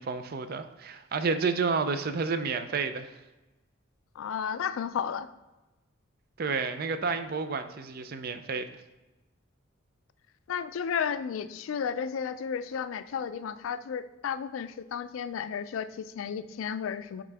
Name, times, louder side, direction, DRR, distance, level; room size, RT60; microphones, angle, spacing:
voice 1, 0.0-3.1 6.4-8.7, right 4 dB, 45° right, 9 dB, 0.4 m, -30 dB
voice 2, 4.2-5.3 10.5-17.2, left 7 dB, 75° left, 13 dB, 0.3 m, -33 dB
8.4 x 3.6 x 3.4 m, 1.1 s
head